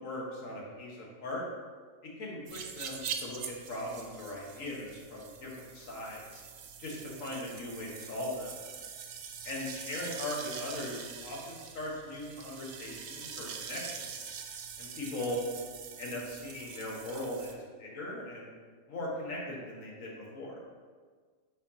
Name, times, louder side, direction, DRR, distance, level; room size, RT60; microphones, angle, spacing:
voice 1, 0.0-1.4 2.2-6.4 6.8-8.6 9.4-14.3 14.8-15.4 16.0-18.5 18.9-20.6, left 1 dB, 85° left, -3 dB, 1.6 m, -39 dB
sound 1, 2.5-17.5, right 7 dB, 85° right, 1.0 m, -44 dB
5.5 x 5.2 x 3.6 m, 1.5 s
omnidirectional pair, 1.3 m